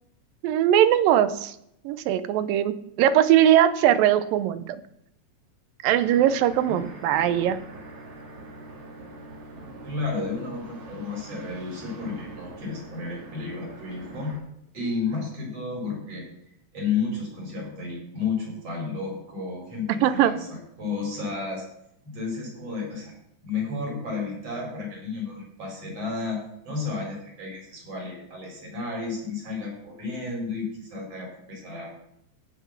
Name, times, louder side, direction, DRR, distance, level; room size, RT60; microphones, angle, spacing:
voice 1, 0.4-1.6 1.8-4.8 5.8-7.6 20.0-20.4, right 11 dB, 85° right, 13 dB, 2.4 m, -20 dB
sound 1, 5.9-14.4, right 2 dB, 70° right, 4.3 m, -43 dB
voice 2, 9.8-14.4 14.7-16.3 16.7-21.6 22.0-23.1 23.4-31.9, left 4 dB, 45° right, -1 dB, 5.7 m, -32 dB
17.5 x 6.1 x 5.9 m, 0.76 s
omnidirectional pair, 4.0 m